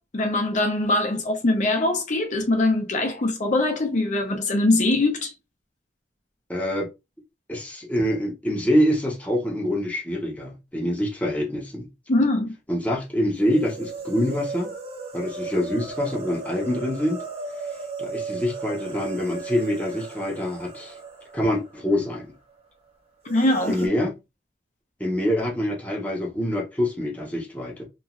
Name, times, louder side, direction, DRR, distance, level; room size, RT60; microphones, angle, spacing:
voice 1, 0.1-5.3 12.1-12.5 23.3-23.8, left 2 dB, 45° left, 0.6 m, -22 dB
voice 2, 6.5-6.9 7.5-11.9 12.7-14.7 15.1-17.2 18.0-20.9 21.3-22.3 23.7-24.1 25.0-27.8, equal, 10° left, 0.7 m, -25 dB
sound 1, 13.4-22.2 22.5-22.6 23.2-23.9, right 4 dB, 35° right, 0.8 m, -36 dB
2.9 x 2.4 x 2.4 m
head